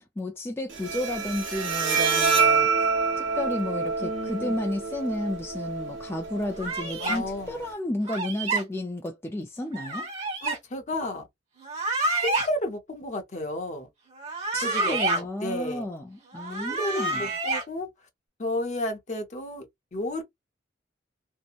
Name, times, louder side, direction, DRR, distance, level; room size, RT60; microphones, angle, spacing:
voice 1, 0.2-2.9 3.2-10.1 14.5-17.3, left 1 dB, 15° left, 0.3 m, -32 dB
Bowed string instrument, 0.7-7.7, right 5 dB, 75° right, 0.8 m, -27 dB
voice 2, 4.0-4.6 7.0-7.6 10.4-11.3 12.2-13.9 14.6-15.9 16.5-17.9 18.4-19.7 19.9-20.2, left 1 dB, 40° left, 0.7 m, -32 dB
sound 1, 6.6-7.2 8.1-8.6 9.7-10.6 11.6-12.5 14.2-15.2 16.3-17.6, right 2 dB, 40° right, 1.2 m, -28 dB
2.7 x 2.1 x 2.4 m
head